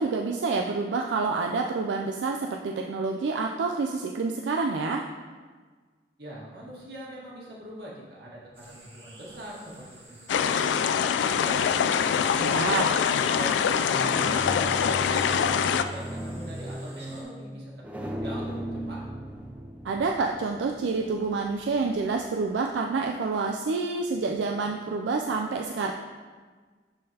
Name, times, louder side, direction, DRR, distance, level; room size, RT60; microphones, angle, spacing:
voice 1, 0.0-5.0 12.4-12.8 19.8-25.9, right 4 dB, 85° right, 2 dB, 0.4 m, -28 dB
voice 2, 6.2-11.7 12.2-15.1 15.4-19.0, right 1 dB, 65° right, -5 dB, 1.7 m, -42 dB
sound 1, 8.5-17.2, right 1 dB, 30° right, 1.6 m, -49 dB
sound 2, 10.3-15.8, left 7 dB, 85° left, 0.3 m, -24 dB
sound 3, 13.9-22.3, equal, 10° right, 0.4 m, -37 dB
11.5 x 3.8 x 2.8 m, 1.5 s
head